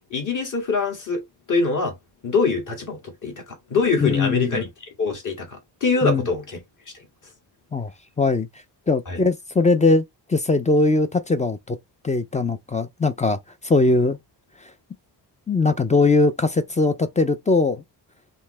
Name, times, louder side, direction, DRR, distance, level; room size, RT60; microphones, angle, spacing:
voice 1, 0.1-1.9 2.2-3.3 3.7-4.7 5.0-6.6 9.1-9.2, left 4 dB, 45° left, 2.0 m, -24 dB
voice 2, 4.0-4.6 6.0-6.3 7.7-7.9 8.2-8.5 8.9-10.0 10.3-11.8 12.0-14.2 15.5-17.8, left 3 dB, 20° left, 0.3 m, -20 dB
5.4 x 2.8 x 3.2 m
wide cardioid pair, 145°, 40 cm